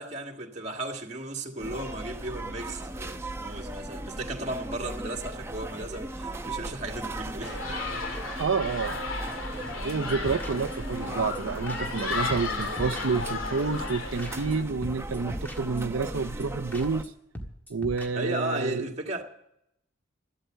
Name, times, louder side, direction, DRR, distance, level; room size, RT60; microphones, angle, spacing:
voice 1, 0.0-7.8 8.1-8.4 18.1-19.2, right 1 dB, 35° right, 1.8 m, -35 dB
sound 1, 1.6-17.0, right 1 dB, 15° right, 0.8 m, -37 dB
sound 2, 7.4-14.6, left 4 dB, 85° left, 2.5 m, -34 dB
voice 2, 8.4-9.1 9.8-17.1 17.7-18.8, right 4 dB, 85° right, 0.6 m, -29 dB
sound 3, 10.0-11.0 11.3-11.4 11.7-12.0 12.3-13.5 13.9-14.0 14.2-14.6 14.8-16.1 16.4-16.5 16.7-17.1 17.3-18.1, equal, 10° left, 1.6 m, -42 dB
13.0 x 12.5 x 7.8 m
head